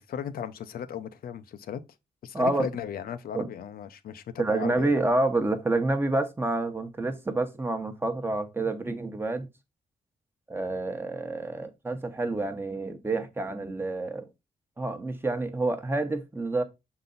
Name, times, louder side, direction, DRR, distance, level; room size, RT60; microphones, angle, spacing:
voice 1, 0.0-1.8 2.2-4.9, left 8 dB, 85° left, 0.6 m, -36 dB
voice 2, 2.3-2.7 3.3-3.5 4.4-9.5 10.5-14.3 14.8-16.6, right 2 dB, 15° right, 0.9 m, -28 dB
6.6 x 4.0 x 3.9 m
wide cardioid pair, 140°, 15 cm